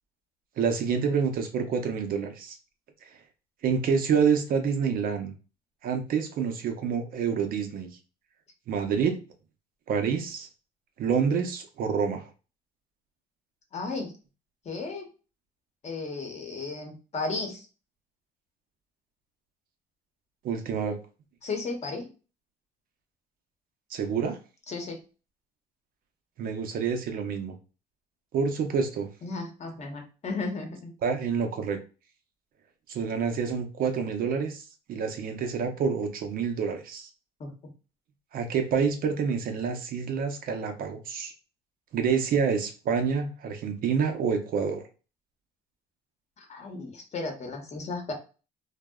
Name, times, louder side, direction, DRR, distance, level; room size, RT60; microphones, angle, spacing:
voice 1, 0.6-2.6 3.6-5.3 5.8-7.9 8.7-9.2 9.9-10.5 11.0-12.3 20.4-21.0 23.9-24.4 26.4-27.5 28.3-29.1 31.0-31.8 32.9-34.6 34.9-37.1 38.3-41.3 41.9-44.8, right 6 dB, 60° right, 6 dB, 0.5 m, -27 dB
voice 2, 13.7-14.1 14.6-15.1 15.8-17.7 21.4-22.1 24.7-25.0 29.2-30.9 37.4-37.5 46.4-48.1, left 3 dB, 40° left, 3 dB, 0.8 m, -34 dB
2.7 x 2.1 x 2.2 m, 0.34 s
cardioid pair, 110°, 17 cm